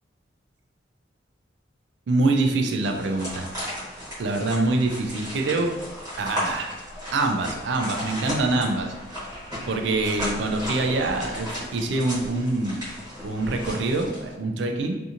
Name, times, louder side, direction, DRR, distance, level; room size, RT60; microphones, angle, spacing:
voice 1, 2.1-3.5 4.2-5.8 6.2-6.7 7.1-8.9 9.7-12.8 13.2-14.9, right 2 dB, 70° right, 3 dB, 0.4 m, -25 dB
sound 1, 2.8-14.3, equal, 20° right, 1.1 m, -35 dB
2.8 x 2.6 x 2.5 m, 1.1 s
head